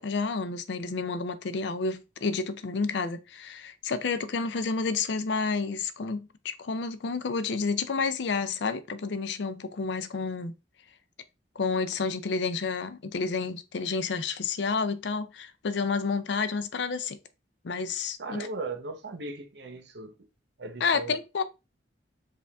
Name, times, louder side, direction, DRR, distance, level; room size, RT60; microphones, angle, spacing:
voice 1, 0.0-10.5 11.6-17.2 17.6-18.5 20.8-21.4, left 4 dB, 70° left, 0.5 m, -30 dB
voice 2, 18.2-20.1 20.6-21.2, right 3 dB, 65° right, 0.8 m, -37 dB
4.9 x 2.5 x 3.4 m
head